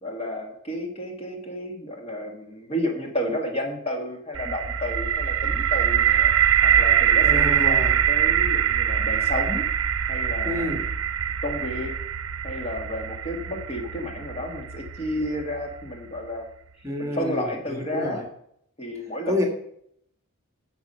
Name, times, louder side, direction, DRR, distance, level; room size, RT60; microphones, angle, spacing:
voice 1, 0.0-6.3 6.6-9.6 10.1-10.7 11.4-11.9 12.4-16.5 17.0-18.2 18.8-19.5, left 1 dB, 30° left, 2 dB, 1.6 m, -31 dB
sound 1, 4.3-16.2, right 9 dB, 75° right, 0.6 m, -23 dB
voice 2, 7.2-7.9 10.4-10.9 16.8-17.5 17.9-18.2 19.3-19.5, left 1 dB, 15° right, 3 dB, 1.6 m, -28 dB
10.5 x 7.0 x 5.5 m, 0.72 s
head